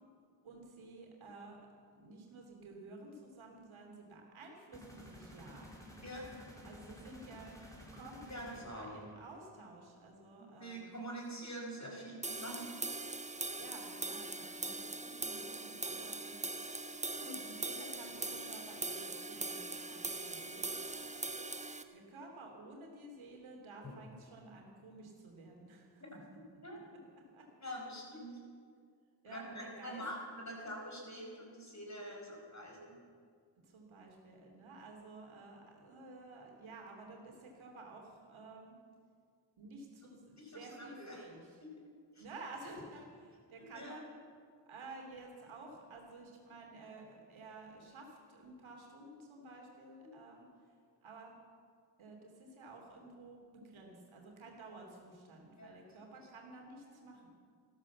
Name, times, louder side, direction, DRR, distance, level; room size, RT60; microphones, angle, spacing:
voice 1, 0.4-1.6 1.9-5.7 6.6-10.9 13.0-13.1 13.6-16.4 17.2-20.7 21.9-26.2 27.3-27.5 29.2-30.0 33.6-38.8 39.6-41.4 42.2-44.2 44.7-50.5 51.0-51.3 52.0-57.3, right 2 dB, 85° right, 1 dB, 3.1 m, -52 dB
sound 1, 4.7-9.5, left 1 dB, 5° left, 4.3 m, -53 dB
voice 2, 6.0-6.3 8.3-8.9 10.4-12.7 26.1-26.2 26.6-26.8 27.6-28.4 29.2-33.0 40.0-40.1 40.4-41.2 41.6-41.7 42.1-42.2 43.7-44.0 50.0-50.2 55.6-56.3 56.8-57.0, equal, 35° left, -1 dB, 5.2 m, -46 dB
sound 2, 12.2-21.8, right 2 dB, 15° right, 1.1 m, -41 dB
14.5 x 13.0 x 7.3 m, 2.1 s
cardioid pair, 50°, 46 cm